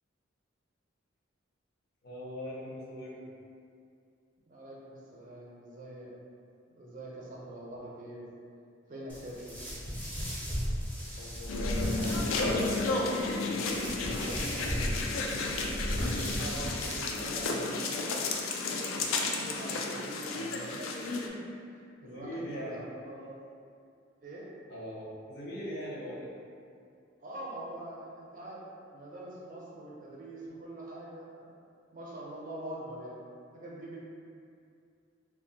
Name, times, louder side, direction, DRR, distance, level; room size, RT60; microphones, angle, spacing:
voice 1, 2.0-3.3 11.2-16.1 22.0-22.9 24.7-26.3, equal, 55° left, -6 dB, 0.6 m, -42 dB
voice 2, 4.5-6.1 6.8-8.3 8.9-9.6 15.9-18.3 18.6-21.0 21.7-22.8 23.1-23.4 24.2-24.5 27.2-31.5 31.9-33.1 33.5-34.0, right 1 dB, 40° right, -5 dB, 0.5 m, -44 dB
sound 1, 9.1-17.4, equal, 10° left, 0.5 m, -36 dB
sound 2, 11.5-21.3, left 3 dB, 85° left, 0.3 m, -32 dB
2.3 x 2.1 x 3.8 m, 2.4 s
head